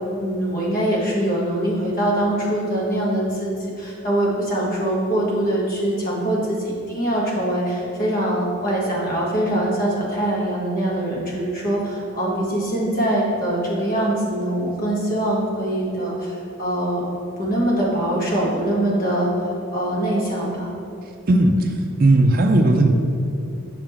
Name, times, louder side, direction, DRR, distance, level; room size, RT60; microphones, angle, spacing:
voice 1, 0.2-17.0 17.4-20.7, right 1 dB, 40° left, -4 dB, 1.4 m, -23 dB
voice 2, 21.3-22.9, right 2 dB, 45° right, 4 dB, 0.4 m, -16 dB
6.8 x 5.2 x 3.5 m, 2.6 s
head